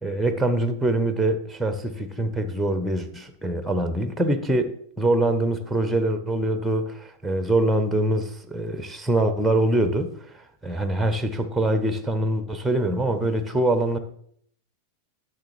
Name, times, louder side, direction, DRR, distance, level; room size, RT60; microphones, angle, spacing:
voice 1, 0.0-14.0, right 1 dB, ahead, 9 dB, 0.7 m, -24 dB
10.5 x 6.6 x 3.1 m, 0.64 s
figure-of-eight pair, 90°, 0 cm